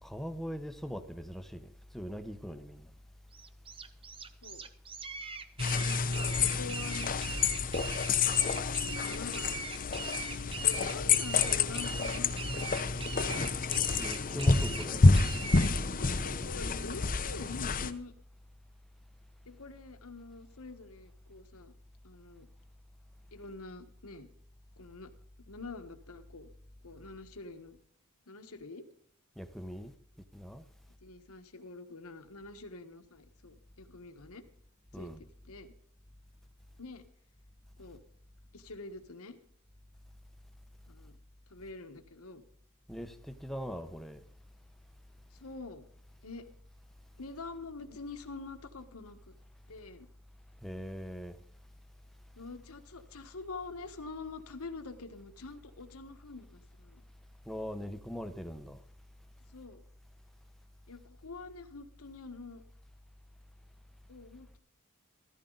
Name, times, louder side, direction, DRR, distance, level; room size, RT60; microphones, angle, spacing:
voice 1, 0.0-1.7 1.9-2.9 13.9-15.0 29.4-29.9 30.3-30.6 34.9-35.2 42.9-44.2 50.6-51.4 57.5-58.8, equal, ahead, 0.9 m, -41 dB
sound 1, 3.3-15.7, right 5 dB, 25° right, 0.7 m, -41 dB
sound 2, 5.6-17.9, left 4 dB, 40° left, 0.8 m, -29 dB
voice 2, 5.8-7.2 8.0-8.5 8.7-9.6 10.4-12.8 13.1-13.4 15.9-18.1 19.4-21.7 22.0-22.5 23.3-24.3 24.8-25.1 25.5-26.5 26.8-27.8 28.3-28.9 31.0-34.4 34.9-35.7 36.8-37.1 37.8-38.0 38.5-39.4 40.8-41.2 41.5-42.4 45.3-45.9 46.2-46.5 47.2-49.3 49.7-50.1 52.4-57.0 59.5-59.8 60.9-62.6 64.1-64.6, left 3 dB, 70° left, 1.4 m, -46 dB
14.5 x 14.0 x 4.0 m
head